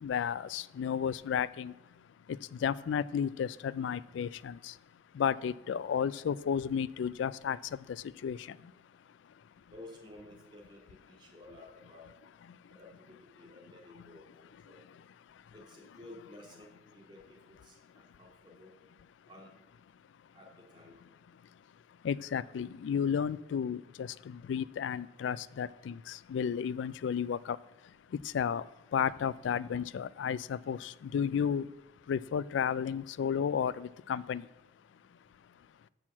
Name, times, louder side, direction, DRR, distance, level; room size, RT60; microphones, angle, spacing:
voice 1, 0.0-1.7 2.5-4.7 5.2-7.6 7.9-8.4 22.0-27.6 28.3-28.6 28.9-31.7 32.1-34.4, left 7 dB, 75° left, 18 dB, 0.3 m, -33 dB
voice 2, 9.7-12.1 12.7-14.3 14.6-14.8 15.5-18.7 19.3-19.5 20.3-21.0, left 1 dB, 25° right, -2 dB, 2.2 m, -53 dB
6.4 x 5.9 x 7.2 m, 1.0 s
head